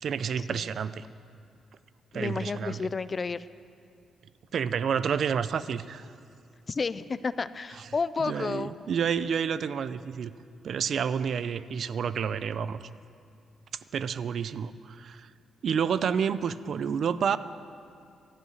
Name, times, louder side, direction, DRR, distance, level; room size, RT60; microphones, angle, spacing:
voice 1, 0.0-1.0 2.1-2.8 4.5-6.1 8.2-10.3 10.6-12.8 13.9-15.3 15.6-17.4, right 7 dB, 55° right, 15 dB, 0.4 m, -29 dB
voice 2, 2.1-3.5 6.7-8.7, left 4 dB, 30° left, 16 dB, 0.3 m, -31 dB
12.5 x 8.0 x 9.3 m, 2.5 s
cardioid pair, 135°, 0 cm